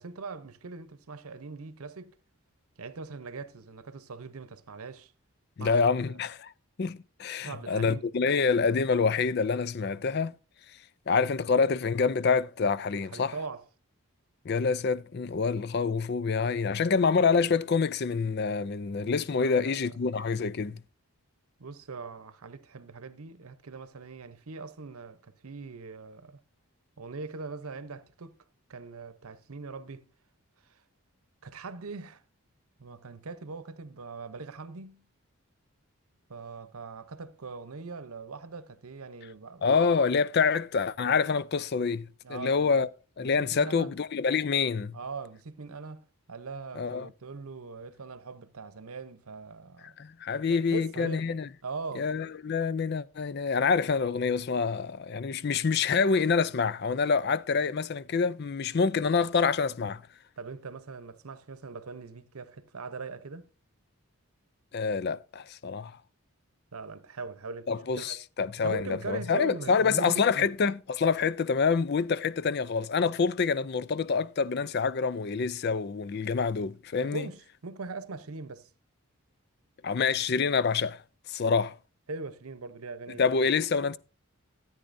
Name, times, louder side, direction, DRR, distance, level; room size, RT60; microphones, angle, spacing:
voice 1, 0.0-2.2 2.8-5.1 5.6-6.0 7.4-8.1 13.0-13.6 19.3-20.0 21.6-26.4 27.0-28.4 28.7-30.1 30.7-30.8 31.4-32.2 32.8-35.1 36.3-39.7 42.2-42.8 43.2-43.9 44.9-50.0 50.4-51.2 51.6-52.1 60.4-63.5 66.7-68.2 68.6-70.5 77.0-78.7 82.1-83.4, right 4 dB, 80° right, 0.8 m, -41 dB
voice 2, 5.6-6.5 6.8-10.3 11.1-13.3 14.5-20.8 39.6-42.9 43.2-45.0 46.8-47.1 50.0-51.5 52.0-60.0 64.7-65.9 67.7-77.3 79.8-81.0 81.3-81.7 83.2-84.0, left 5 dB, 45° left, 0.4 m, -27 dB
13.5 x 8.8 x 2.6 m
head